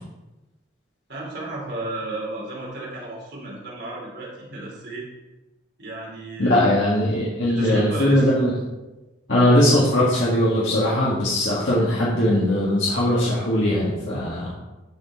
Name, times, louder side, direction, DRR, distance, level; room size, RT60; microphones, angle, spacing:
voice 1, 1.1-5.1 5.8-6.8 7.5-8.3, right 2 dB, 60° right, -4 dB, 3.4 m, -33 dB
voice 2, 6.4-8.5 9.3-14.5, left 1 dB, 75° left, -7 dB, 2.0 m, -20 dB
13.5 x 4.6 x 4.4 m, 1.1 s
head